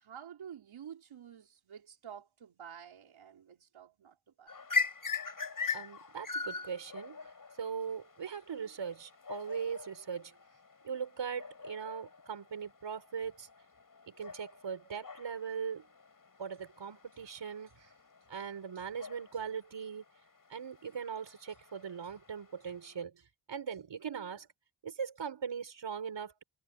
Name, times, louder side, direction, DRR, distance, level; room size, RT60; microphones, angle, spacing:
voice 1, 0.0-4.6, right 8 dB, 90° right, 3.7 m, -50 dB
sound 1, 4.5-23.0, left 5 dB, 45° left, 7.7 m, -42 dB
voice 2, 5.7-7.3 7.6-10.3 10.8-13.5 14.2-15.9 16.4-17.9 18.3-20.0 20.5-24.5 24.8-26.4, right 6 dB, 65° right, 5.7 m, -40 dB
wide cardioid pair, 110°, 46 cm